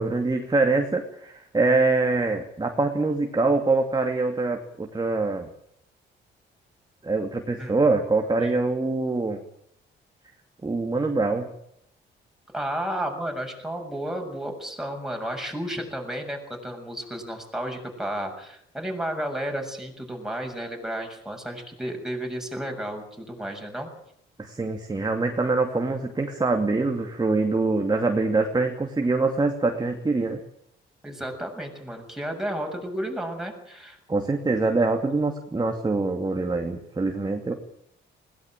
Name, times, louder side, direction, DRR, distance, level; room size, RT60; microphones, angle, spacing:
voice 1, 0.0-5.5 7.0-9.4 10.6-11.5 24.4-30.4 34.1-37.5, right 3 dB, 20° right, 4 dB, 2.5 m, -24 dB
voice 2, 12.5-23.9 31.0-34.0, right 1 dB, ahead, 2 dB, 6.9 m, -32 dB
20.5 x 18.0 x 9.0 m, 0.72 s
cardioid pair, 90°, 20 cm